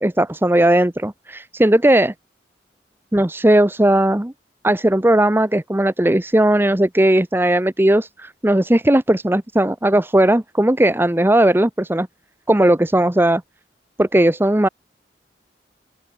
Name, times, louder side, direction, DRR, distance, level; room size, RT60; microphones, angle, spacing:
voice 1, 0.0-2.1 3.1-4.3 4.6-12.1 12.5-13.4 14.0-14.7, right 1 dB, 15° right, 0.7 m, -17 dB
open air
head